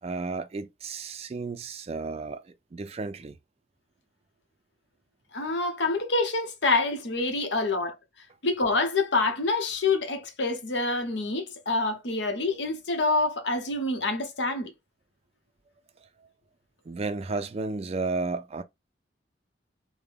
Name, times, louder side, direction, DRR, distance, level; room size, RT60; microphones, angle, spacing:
voice 1, 0.0-3.4 16.0-16.1 16.9-18.6, right 3 dB, 35° right, 0.4 m, -33 dB
voice 2, 5.3-8.0 8.4-14.7, left 3 dB, 70° left, 0.9 m, -27 dB
3.6 x 2.1 x 3.4 m
head